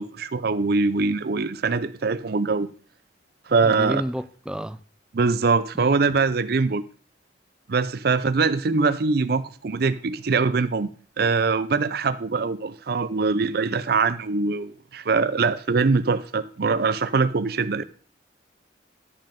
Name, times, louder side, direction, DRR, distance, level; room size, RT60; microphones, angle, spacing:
voice 1, 0.0-2.7 3.5-4.0 5.1-6.8 7.7-10.9 11.2-17.8, right 4 dB, 55° right, 0.5 m, -23 dB
voice 2, 3.6-4.8 5.7-5.8, equal, 5° right, 0.4 m, -30 dB
11.0 x 5.4 x 5.1 m
head